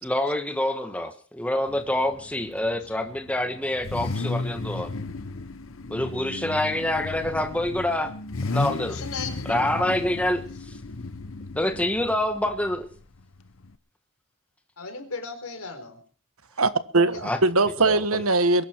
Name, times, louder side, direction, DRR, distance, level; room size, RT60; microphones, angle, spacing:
voice 1, 0.0-4.9 5.9-8.1 8.5-9.0 9.5-10.8 11.5-12.9 17.2-17.4 17.8-18.2, left 1 dB, 5° left, 1.5 m, -26 dB
Car / Idling / Accelerating revving vroom, 1.7-13.8, left 3 dB, 70° left, 0.9 m, -35 dB
voice 2, 8.8-9.6 14.8-16.0 17.1-17.5, left 4 dB, 85° left, 4.3 m, -37 dB
voice 3, 16.6-18.6, right 3 dB, 80° right, 1.4 m, -21 dB
22.0 x 12.0 x 4.6 m
head